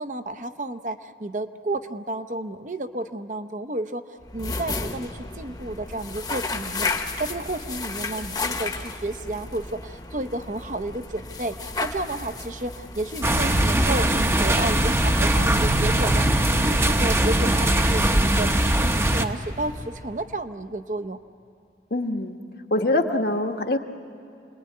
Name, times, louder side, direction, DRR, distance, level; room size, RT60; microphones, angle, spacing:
voice 1, 0.0-4.0 4.3-21.2, right 2 dB, 45° right, 9 dB, 0.8 m, -32 dB
sound 1, 4.2-20.4, left 3 dB, 20° left, 1.1 m, -34 dB
sound 2, 13.2-19.2, right 1 dB, 15° right, 0.8 m, -21 dB
voice 2, 21.9-22.4 22.7-23.8, left 2 dB, 60° left, 4 dB, 1.4 m, -24 dB
28.5 x 20.5 x 9.5 m, 2.6 s
head